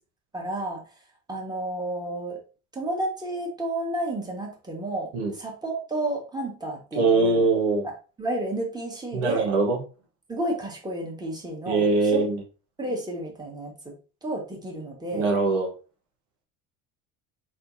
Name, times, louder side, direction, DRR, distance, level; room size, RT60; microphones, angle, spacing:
voice 1, 0.3-0.8 1.3-2.4 2.7-7.5 8.2-9.5 10.3-11.9 12.1-12.3 12.8-13.9 14.2-15.3, right 1 dB, 10° right, 1.7 m, -31 dB
voice 2, 6.9-7.9 9.1-9.8 11.6-12.4 15.1-15.7, right 3 dB, 75° right, 1.5 m, -22 dB
4.2 x 3.9 x 2.8 m
hypercardioid pair, 75°, 45 cm